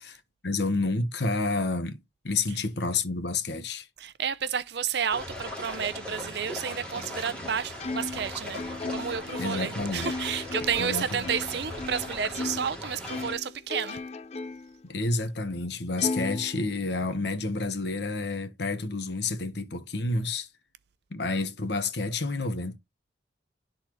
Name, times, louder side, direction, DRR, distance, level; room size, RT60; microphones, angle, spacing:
voice 1, 0.0-3.9 9.4-10.1 10.8-11.3 14.8-20.5 21.1-22.8, left 3 dB, 65° left, 1.1 m, -29 dB
voice 2, 4.0-14.0, right 7 dB, 65° right, 0.6 m, -31 dB
sound 1, 5.1-13.3, left 1 dB, 5° left, 2.6 m, -39 dB
Plucked string instrument, 7.8-12.7 13.1-14.8 15.2-15.3 16.0-17.1, left 3 dB, 35° left, 0.5 m, -36 dB
12.0 x 4.1 x 3.0 m
head